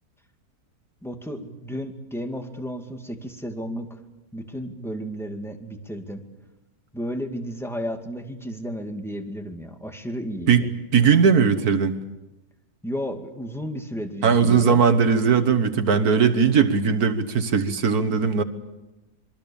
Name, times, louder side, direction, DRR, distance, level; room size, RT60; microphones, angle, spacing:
voice 1, 1.0-4.0 4.3-6.2 6.9-10.7 12.8-14.8, equal, ahead, 4 dB, 2.2 m, -33 dB
voice 2, 10.5-12.0 14.2-18.4, right 6 dB, 70° right, 8 dB, 1.8 m, -19 dB
27.5 x 22.5 x 7.1 m, 1.0 s
omnidirectional pair, 1.7 m